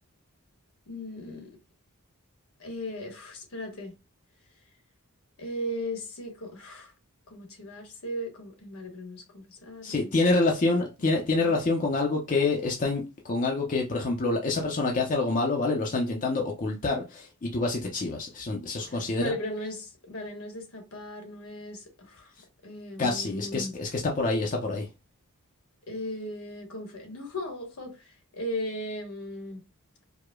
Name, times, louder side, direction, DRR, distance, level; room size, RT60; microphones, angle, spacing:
voice 1, 0.9-1.6 2.6-4.0 5.4-6.9 7.3-10.1 18.9-22.3 22.6-23.8 25.9-29.6, left 1 dB, 75° left, 1.2 m, -37 dB
voice 2, 9.8-19.3 23.0-24.9, left 3 dB, 35° left, 0.5 m, -27 dB
4.7 x 2.1 x 2.2 m
head